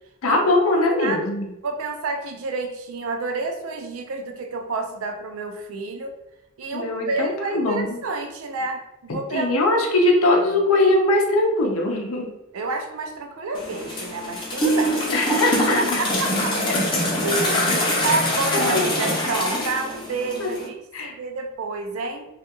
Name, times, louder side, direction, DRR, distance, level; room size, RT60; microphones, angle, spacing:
voice 1, 0.2-1.5 6.7-8.0 9.3-12.3 15.1-15.8 16.7-16.8 18.0-18.1 18.7-18.8 20.4-20.5 20.9-21.1, left 2 dB, 70° left, 0 dB, 0.5 m, -21 dB
voice 2, 1.6-6.1 6.6-9.5 12.5-15.2 15.8-16.8 17.2-17.7 18.0-22.3, right 3 dB, 75° right, 4 dB, 0.4 m, -29 dB
sound 1, 13.5-20.7, equal, 20° left, 0.6 m, -24 dB
2.4 x 2.2 x 2.8 m, 0.94 s
head